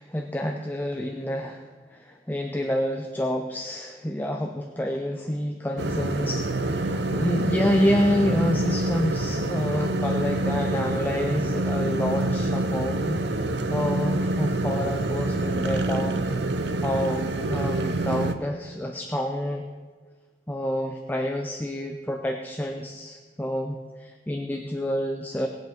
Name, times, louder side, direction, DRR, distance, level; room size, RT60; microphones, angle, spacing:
voice 1, 0.0-1.6 1.9-13.2 13.7-16.2 16.8-19.6 20.5-25.5, left 1 dB, 10° left, 3 dB, 0.6 m, -28 dB
sound 1, 5.8-18.3, right 2 dB, 75° right, 0.8 m, -26 dB
19.0 x 8.0 x 4.5 m, 1.5 s
head